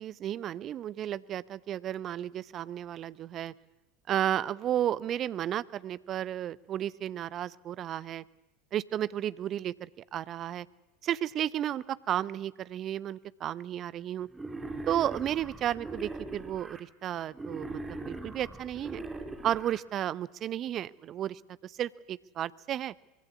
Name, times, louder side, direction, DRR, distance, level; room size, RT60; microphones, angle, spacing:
voice 1, 0.0-3.5 4.1-8.2 8.7-10.7 11.0-14.3 14.9-19.0 19.4-22.9, right 11 dB, 35° right, 20 dB, 0.8 m, -33 dB
Wild animals, 14.3-16.8 17.3-19.8, right 2 dB, 10° right, 3.1 m, -40 dB
24.0 x 23.0 x 8.4 m, 1.0 s
figure-of-eight pair, 80°, 0 cm